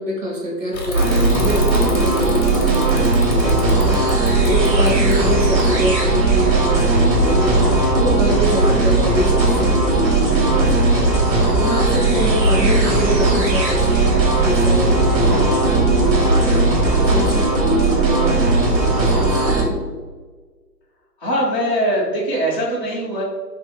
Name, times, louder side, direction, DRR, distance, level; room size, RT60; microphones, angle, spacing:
voice 1, 0.0-4.1 4.4-7.6 7.9-11.2 11.6-14.0 14.4-19.8, equal, 50° right, -2 dB, 0.8 m, -25 dB
Bicycle / Mechanisms, 0.7-6.2, left 3 dB, 60° left, 0.8 m, -34 dB
sound 1, 0.9-19.6, right 3 dB, 85° right, 1.0 m, -17 dB
sound 2, 3.4-17.5, equal, 15° right, 0.6 m, -27 dB
voice 2, 21.2-23.2, equal, 35° left, -9 dB, 0.5 m, -21 dB
2.8 x 2.5 x 2.9 m, 1.4 s
hypercardioid pair, 155°, 50 cm